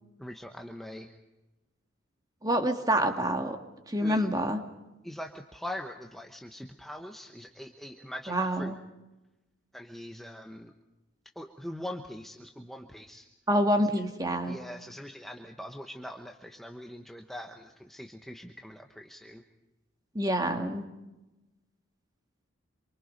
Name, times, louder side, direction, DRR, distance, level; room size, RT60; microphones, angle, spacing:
voice 1, 0.2-1.1 4.0-4.3 5.0-8.7 9.7-10.7 11.4-13.3 14.5-19.4, left 1 dB, ahead, 3 dB, 1.0 m, -42 dB
voice 2, 2.4-3.6 3.9-4.6 8.3-8.8 13.5-14.6 20.2-20.9, equal, 20° right, 5 dB, 1.9 m, -27 dB
27.0 x 24.0 x 5.3 m, 1.0 s
head